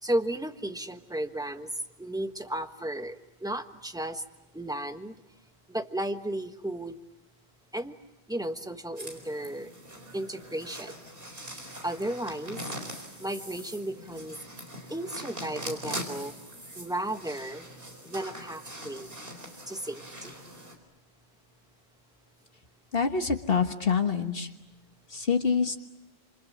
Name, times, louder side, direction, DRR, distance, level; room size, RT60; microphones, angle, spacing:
voice 1, 0.0-1.7 2.0-4.2 4.5-5.2 5.7-7.0 7.7-7.9 8.3-9.7 10.1-10.9 11.8-12.6 13.2-14.4 14.9-16.3 16.8-17.7 18.0-19.1 19.7-20.3, right 1 dB, 5° right, 7 dB, 1.3 m, -34 dB
sound 1, 9.0-20.7, equal, 60° right, 4.6 m, -42 dB
voice 2, 22.9-24.5 25.1-25.8, left 5 dB, 60° left, 5 dB, 1.5 m, -26 dB
28.5 x 27.5 x 7.4 m, 0.91 s
omnidirectional pair, 1.1 m